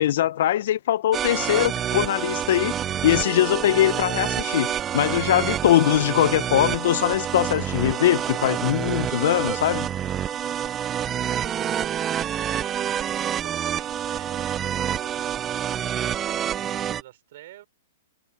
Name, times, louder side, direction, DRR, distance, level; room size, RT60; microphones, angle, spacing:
voice 1, 0.0-2.7 3.0-9.9, left 13 dB, 60° left, 0.5 m, -22 dB
sound 1, 1.1-17.0, right 9 dB, 20° right, 0.4 m, -27 dB
voice 2, 10.3-10.6 10.9-13.0 13.4-17.7, right 14 dB, 55° right, 5.0 m, -48 dB
hypercardioid pair, 145°, 0 cm